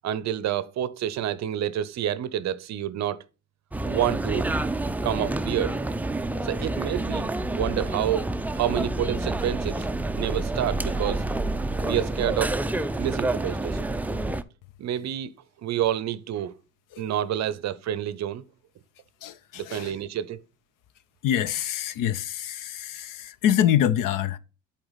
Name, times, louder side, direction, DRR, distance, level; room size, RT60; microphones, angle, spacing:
voice 1, 0.0-3.2 3.9-4.5 5.0-5.8 6.4-8.3 8.5-9.9 10.2-11.2 11.8-12.6 13.0-13.8 14.8-15.3 15.6-16.5 17.0-18.4 19.5-20.4, right 11 dB, 45° right, 0.6 m, -28 dB
sound 1, 3.7-14.4, right 2 dB, 5° right, 0.4 m, -28 dB
voice 2, 19.2-20.0 21.2-24.4, left 10 dB, 55° left, 0.7 m, -25 dB
7.7 x 4.4 x 3.9 m
hypercardioid pair, 75°, 38 cm